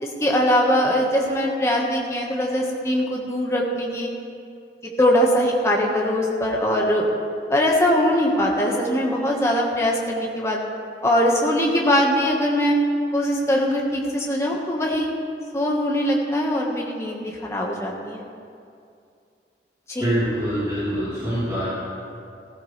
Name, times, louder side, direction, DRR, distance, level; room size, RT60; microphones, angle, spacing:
voice 1, 0.0-4.1 4.8-7.0 7.5-10.6 11.0-12.8 13.1-15.1 15.5-18.2 19.9-20.1, equal, 15° left, -2 dB, 1.5 m, -21 dB
voice 2, 20.0-21.7, equal, 20° right, -13 dB, 3.9 m, -24 dB
15.5 x 15.0 x 3.3 m, 2.4 s
head